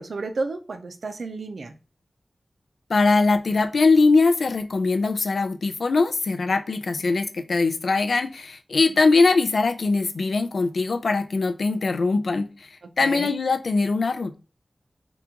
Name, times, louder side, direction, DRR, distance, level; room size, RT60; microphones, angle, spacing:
voice 1, 0.0-1.7 13.0-13.3, right 3 dB, 80° right, 0.5 m, -32 dB
voice 2, 2.9-12.7 13.0-14.4, left 3 dB, 75° left, 0.4 m, -21 dB
2.9 x 2.3 x 3.7 m
wide cardioid pair, 80°, 0 cm